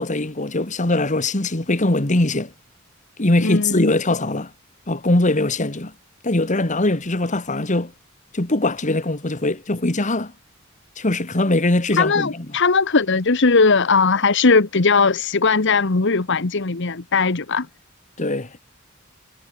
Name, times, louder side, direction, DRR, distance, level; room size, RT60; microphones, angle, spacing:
voice 1, 0.0-2.5 3.2-4.5 4.9-5.9 6.2-7.9 8.3-10.3 11.0-12.5 18.2-18.6, left 2 dB, 35° left, 2.0 m, -21 dB
voice 2, 3.4-3.9 12.0-17.7, left 4 dB, 60° left, 1.2 m, -18 dB
head